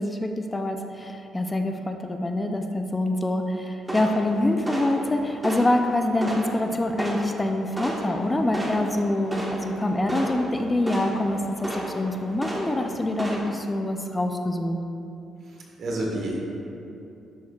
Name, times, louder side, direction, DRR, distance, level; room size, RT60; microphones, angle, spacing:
voice 1, 0.0-14.8, left 1 dB, 20° left, 5 dB, 0.5 m, -25 dB
sound 1, 3.8-13.4, right 1 dB, 15° right, 1.3 m, -34 dB
voice 2, 15.4-16.4, right 1 dB, 60° right, -2 dB, 1.5 m, -30 dB
11.0 x 6.1 x 2.4 m, 2.8 s
cardioid pair, 90°, 0 cm